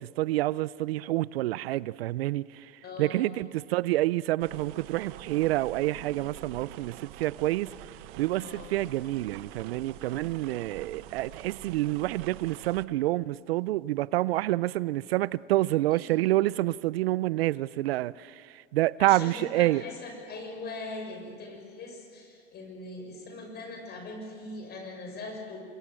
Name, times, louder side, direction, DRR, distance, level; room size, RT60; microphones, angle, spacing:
voice 1, 0.0-19.8, right 16 dB, 70° right, 20 dB, 0.6 m, -28 dB
voice 2, 2.8-3.3 8.4-8.7 15.9-16.1 19.0-25.6, left 2 dB, 30° left, 4 dB, 6.8 m, -41 dB
sound 1, 4.4-12.9, right 14 dB, 50° right, 1.2 m, -45 dB
28.0 x 21.5 x 7.6 m, 2.2 s
hypercardioid pair, 120°, 31 cm